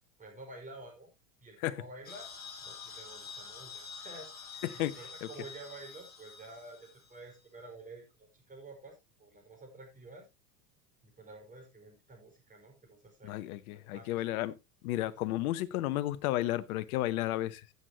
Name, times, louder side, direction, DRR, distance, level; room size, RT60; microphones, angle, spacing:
voice 1, 0.2-1.1 1.4-2.3 2.6-10.3 11.0-13.6 13.9-14.2 14.9-15.2, right 2 dB, 15° right, 5.3 m, -50 dB
sound 1, 2.0-7.3, left 5 dB, 20° left, 2.7 m, -47 dB
voice 2, 4.6-5.3 13.2-14.6 14.8-17.7, left 15 dB, 60° left, 1.1 m, -33 dB
14.5 x 8.1 x 2.9 m
hypercardioid pair, 100°, 48 cm